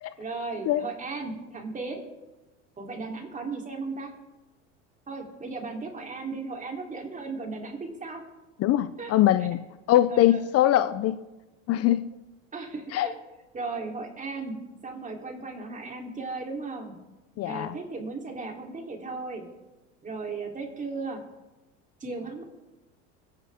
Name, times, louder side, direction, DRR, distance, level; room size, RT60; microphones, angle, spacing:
voice 1, 0.2-2.0 2.8-4.1 5.1-8.2 9.0-9.1 10.1-10.4 12.5-13.1 13.5-14.6 14.8-16.9 17.4-19.4 20.0-21.2 22.0-22.4, right 3 dB, 20° right, 1 dB, 3.6 m, -36 dB
voice 2, 8.6-9.6 9.9-11.2 11.7-12.1 12.9-13.1 17.4-17.8, left 13 dB, 45° left, 13 dB, 0.7 m, -22 dB
21.5 x 10.5 x 3.7 m, 1.1 s
supercardioid pair, 100°, 35 cm